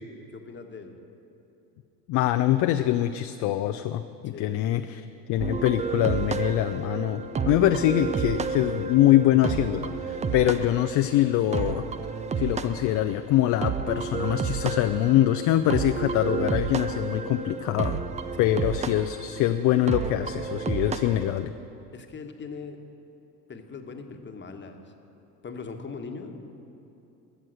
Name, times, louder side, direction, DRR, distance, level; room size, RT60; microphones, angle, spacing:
voice 1, 0.3-0.9 4.3-4.7 18.4-18.6 21.9-22.8 23.5-24.8 25.4-26.4, left 4 dB, 20° left, 5 dB, 1.3 m, -40 dB
voice 2, 2.1-11.8 12.4-18.0 18.4-21.5, left 13 dB, 40° left, 9 dB, 0.5 m, -24 dB
sound 1, 5.4-21.4, right 5 dB, 15° right, 0.4 m, -31 dB
13.0 x 7.5 x 7.8 m, 2.8 s
hypercardioid pair, 80°, 49 cm